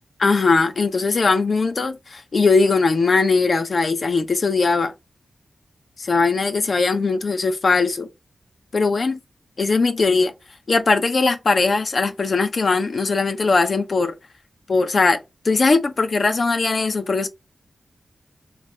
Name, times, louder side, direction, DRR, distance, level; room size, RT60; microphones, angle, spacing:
voice 1, 0.2-4.9 6.0-8.1 8.7-9.2 9.6-10.3 10.7-14.1 14.7-15.2 15.4-17.3, left 4 dB, 65° left, 0.9 m, -19 dB
3.5 x 3.1 x 4.6 m
cardioid pair, 40°, 0 cm